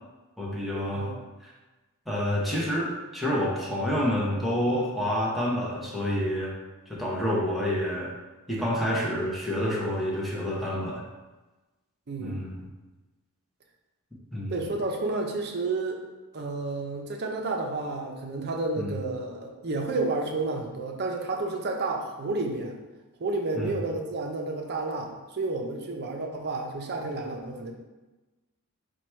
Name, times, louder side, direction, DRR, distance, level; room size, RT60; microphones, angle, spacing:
voice 1, 0.4-1.1 1.4-1.5 2.1-6.5 6.9-8.1 8.5-11.0 12.2-12.6 14.3-14.7 18.8-18.9 23.6-23.7, equal, ahead, -6 dB, 0.8 m, -28 dB
voice 2, 14.5-16.0 16.3-22.8 23.2-27.7, right 3 dB, 50° right, 1 dB, 0.6 m, -31 dB
4.6 x 2.3 x 4.3 m, 1.1 s
head